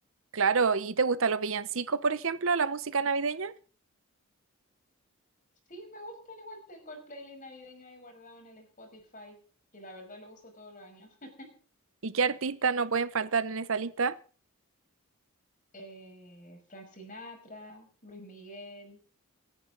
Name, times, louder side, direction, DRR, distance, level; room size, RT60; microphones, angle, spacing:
voice 1, 0.3-3.5 12.0-14.2, right 5 dB, 65° right, 0.8 m, -28 dB
voice 2, 5.7-9.4 9.7-11.5 15.7-19.0, left 1 dB, 35° left, 5.8 m, -47 dB
28.5 x 9.9 x 3.9 m
head